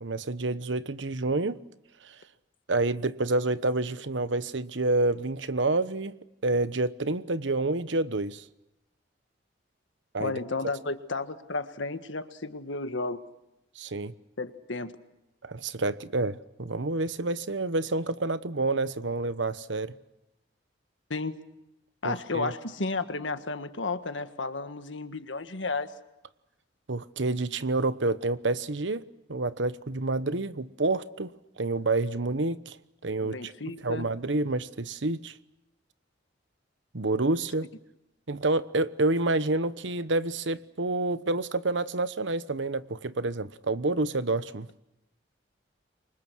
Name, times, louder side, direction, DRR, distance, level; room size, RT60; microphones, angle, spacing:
voice 1, 0.0-1.6 2.0-2.2 2.7-6.1 6.4-8.4 10.1-10.3 13.8-14.1 15.4-19.9 22.0-22.5 26.9-31.3 31.6-32.8 33.0-33.5 33.8-35.3 36.9-37.7 38.3-44.7, right 2 dB, 80° right, 1.1 m, -28 dB
voice 2, 10.2-13.2 14.4-15.0 21.1-21.5 22.0-25.9 33.2-34.1, left 3 dB, 90° left, 1.6 m, -33 dB
28.5 x 24.5 x 6.3 m
head